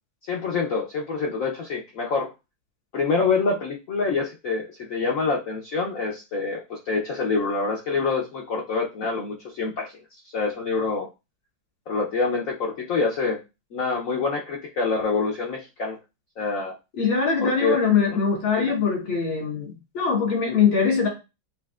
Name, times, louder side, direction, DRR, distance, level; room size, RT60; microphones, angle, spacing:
voice 1, 0.3-2.3 2.9-9.9 10.3-11.1 11.9-13.4 13.7-16.0 16.4-16.8 17.4-17.8 18.1-18.2 18.6-18.7, left 4 dB, 65° left, -1 dB, 0.8 m, -26 dB
voice 2, 16.9-21.1, left 6 dB, 85° left, -2 dB, 2.8 m, -22 dB
7.5 x 2.6 x 2.4 m, 0.26 s
omnidirectional pair, 2.2 m